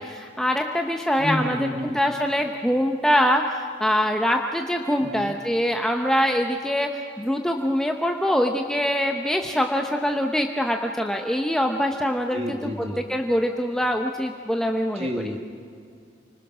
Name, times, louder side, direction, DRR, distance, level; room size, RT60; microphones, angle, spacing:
voice 1, 0.0-6.9 7.2-12.7 13.1-15.1, equal, 5° left, 3 dB, 0.9 m, -24 dB
voice 2, 1.2-2.0 5.0-5.3 12.3-13.0 15.0-15.4, equal, 30° right, 3 dB, 2.4 m, -30 dB
29.0 x 20.5 x 6.2 m, 2.3 s
head